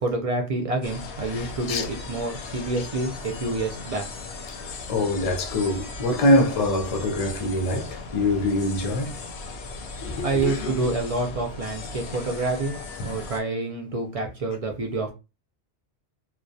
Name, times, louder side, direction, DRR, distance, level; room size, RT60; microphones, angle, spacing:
voice 1, 0.0-4.1 10.2-12.8 13.0-15.1, right 2 dB, 60° right, 0.3 m, -27 dB
sound 1, 0.8-13.4, left 3 dB, 85° left, 0.8 m, -37 dB
voice 2, 4.6-9.2 10.1-10.5, left 1 dB, 50° left, 0.4 m, -24 dB
2.2 x 2.1 x 2.6 m
omnidirectional pair, 1.1 m